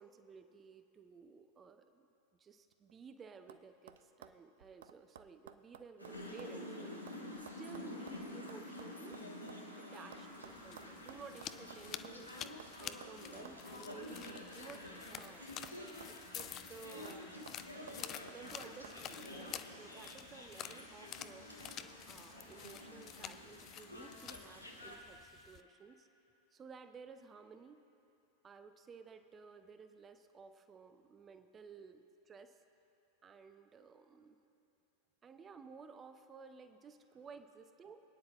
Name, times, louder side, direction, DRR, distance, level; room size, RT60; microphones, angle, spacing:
voice 1, 0.0-2.1 2.4-7.0 7.4-9.2 9.7-14.8 15.1-15.6 16.1-17.4 18.3-21.5 22.1-26.1 26.5-27.8 28.4-32.6 33.2-34.4 35.2-38.0, right 5 dB, 20° right, 9 dB, 0.7 m, -55 dB
sound 1, 2.7-3.1 3.5-3.6 3.9-6.6 6.8-9.6 10.1-12.2 12.6-12.7 13.0-13.1 13.4-13.6 13.9-14.0 14.3-15.4 15.6-16.7 17.0-17.2 17.5-18.4 18.8-19.0, right 9 dB, 60° right, 0.4 m, -56 dB
sound 2, 6.0-25.0, left 1 dB, 90° left, 1.4 m, -49 dB
sound 3, 10.4-25.6, left 10 dB, 30° left, 0.4 m, -50 dB
26.0 x 9.6 x 2.5 m, 2.8 s
figure-of-eight pair, 90°, 0 cm